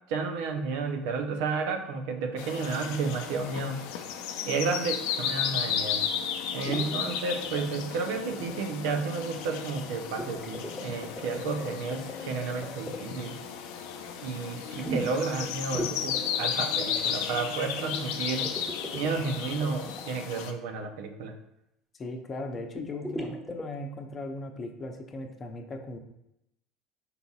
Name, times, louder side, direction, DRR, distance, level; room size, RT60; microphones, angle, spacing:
voice 1, 0.1-3.8 4.4-6.0 6.5-13.4 14.2-18.5 18.9-21.3, right 4 dB, 75° right, 5 dB, 0.6 m, -32 dB
sound 1, 2.4-20.5, left 8 dB, 75° left, 0.5 m, -34 dB
sound 2, 6.6-6.9 7.4-7.9 8.2-8.6 8.9-9.0 10.2-13.0 14.8-15.3 15.7-17.0 18.4-20.0 22.8-23.6, right 1 dB, 5° right, 1.3 m, -37 dB
voice 2, 22.0-26.0, left 2 dB, 35° left, 4 dB, 0.7 m, -38 dB
5.7 x 3.9 x 2.3 m, 0.82 s
hypercardioid pair, 85°, 0 cm